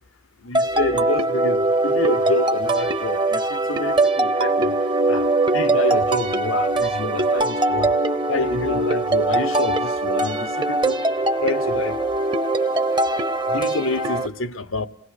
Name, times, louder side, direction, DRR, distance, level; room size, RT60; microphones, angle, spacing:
voice 1, 0.4-4.7 5.1-5.3 5.5-7.9 8.3-11.0 11.4-12.0 13.5-14.9, left 3 dB, 75° left, 1.0 m, -28 dB
sound 1, 0.5-14.3, right 2 dB, 20° right, 0.9 m, -21 dB
28.0 x 19.0 x 6.5 m
head